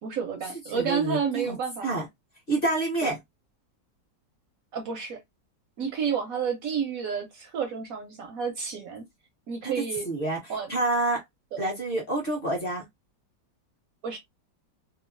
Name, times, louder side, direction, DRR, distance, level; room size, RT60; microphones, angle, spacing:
voice 1, 0.0-1.9 3.0-3.1 4.7-5.2 5.8-9.1 9.5-10.1 10.5-10.7 14.0-14.2, right 6 dB, 65° right, 0.9 m, -30 dB
voice 2, 0.7-1.6 1.8-2.1 2.5-3.2 9.6-11.2 11.6-12.8, right 2 dB, 40° left, 0.9 m, -28 dB
2.9 x 2.3 x 2.4 m
omnidirectional pair, 1.9 m